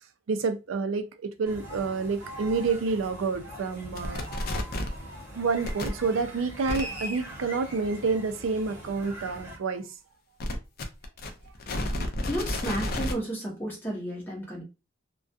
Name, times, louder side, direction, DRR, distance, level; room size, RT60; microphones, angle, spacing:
voice 1, 0.3-4.2 5.3-9.9 11.9-12.1, right 4 dB, 90° right, 0.4 m, -29 dB
sound 1, 1.5-9.6, right 1 dB, 15° right, 1.0 m, -42 dB
sound 2, 4.0-5.0 5.6-5.9 6.7-6.8 10.4-13.1, left 1 dB, 50° left, 0.4 m, -31 dB
voice 2, 11.7-14.6, right 1 dB, 10° left, 0.7 m, -33 dB
2.3 x 2.2 x 2.5 m
head